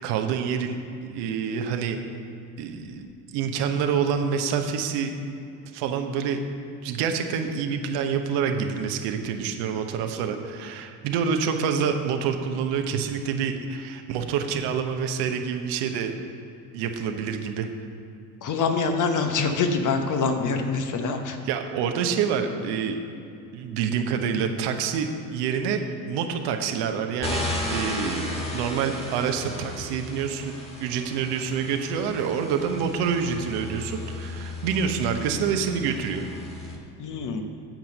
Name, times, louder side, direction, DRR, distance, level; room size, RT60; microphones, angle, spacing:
voice 1, 0.0-2.0 2.6-5.2 5.7-6.4 6.8-16.2 16.7-17.7 21.5-23.0 23.5-25.8 26.1-27.4 27.7-30.5 30.8-36.3, right 6 dB, 60° right, 5 dB, 1.1 m, -27 dB
voice 2, 18.4-21.4 37.0-37.4, left 4 dB, 40° left, 5 dB, 1.1 m, -25 dB
sound 1, 27.2-36.8, left 1 dB, 15° left, 1.9 m, -35 dB
9.1 x 7.3 x 5.4 m, 2.7 s
hypercardioid pair, 70°, 47 cm